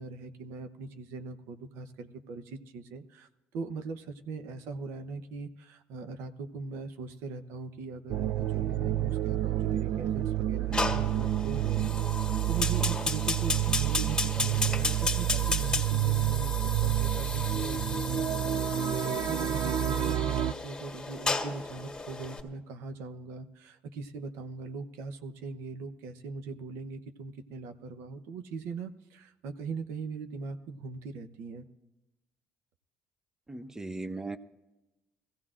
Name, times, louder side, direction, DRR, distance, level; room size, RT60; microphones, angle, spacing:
voice 1, 0.0-11.9 12.5-18.3 19.0-31.7, right 4 dB, 90° right, 9 dB, 0.8 m, -40 dB
sound 1, 8.1-20.5, right 13 dB, 65° right, 0.4 m, -29 dB
Fire, 10.7-22.4, left 3 dB, 15° left, 1.8 m, -34 dB
voice 2, 33.5-34.4, right 2 dB, 15° right, 11 dB, 0.6 m, -37 dB
21.5 x 16.0 x 2.5 m, 1.0 s
cardioid pair, 105°, 4 cm